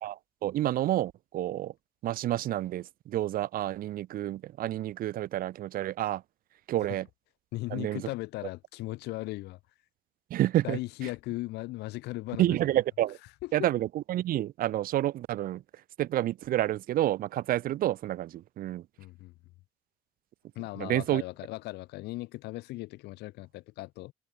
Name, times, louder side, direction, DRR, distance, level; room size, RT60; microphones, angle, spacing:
voice 1, 0.0-1.7 2.0-6.2 6.7-7.1 7.7-8.1 10.3-10.8 12.4-13.2 13.5-15.6 16.0-18.9 20.8-21.2, right 14 dB, 60° right, 0.5 m, -29 dB
voice 2, 7.5-9.6 10.6-12.6 13.4-13.7 19.0-19.3 20.6-24.1, left 19 dB, 85° left, 1.7 m, -37 dB
cardioid pair, 110°, 17 cm